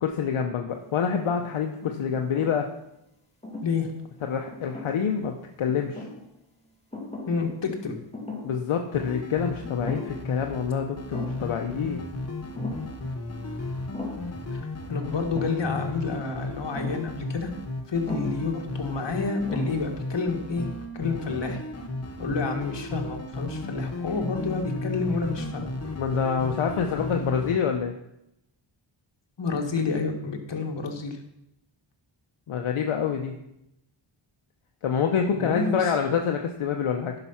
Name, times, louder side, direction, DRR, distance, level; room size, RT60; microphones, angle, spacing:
voice 1, 0.0-2.7 4.2-6.1 8.4-12.0 26.0-27.9 32.5-33.3 34.8-37.1, left 7 dB, 80° left, 3 dB, 0.9 m, -27 dB
sound 1, 1.0-1.6 2.1-2.9 3.4-3.7 4.5-5.2 5.7-6.2 6.9-7.5 7.7-7.8 8.1-8.6 9.0-9.1 9.6-10.3 10.6-10.7 11.1-11.5 12.6-13.0 13.9-14.4 15.4-15.7 16.7-17.1 18.1-18.5 19.1-19.2 19.5-20.0, left 2 dB, 10° left, 2.5 m, -38 dB
voice 2, 3.6-3.9 7.3-8.0 14.5-14.6 14.9-17.5 17.9-20.7 20.9-21.6 22.2-25.7 29.4-31.2 35.3-36.2, left 4 dB, 60° left, 3 dB, 1.8 m, -29 dB
sound 2, 8.9-27.6, left 2 dB, 30° left, 1.2 m, -34 dB
11.0 x 5.9 x 5.7 m, 0.83 s
wide cardioid pair, 75°, 49 cm